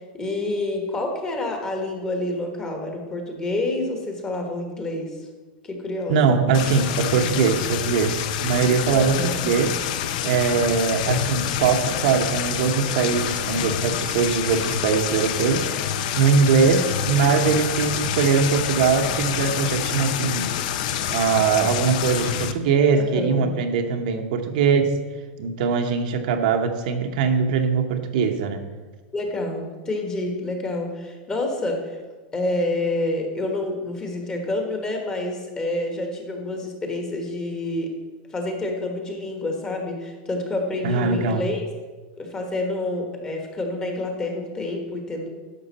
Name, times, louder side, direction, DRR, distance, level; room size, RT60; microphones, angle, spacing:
voice 1, 0.1-5.2 5.6-6.4 8.9-9.4 23.0-23.5 29.1-32.0 32.3-38.0 38.3-41.6 42.2-45.3, left 2 dB, 15° left, 3 dB, 1.3 m, -28 dB
voice 2, 6.1-9.8 10.2-20.5 21.1-24.9 25.4-28.6 40.8-41.4, right 5 dB, 65° right, 5 dB, 0.9 m, -21 dB
sound 1, 6.5-22.5, left 9 dB, 60° left, 0.6 m, -27 dB
10.5 x 6.4 x 4.1 m, 1.3 s
supercardioid pair, 155°, 5 cm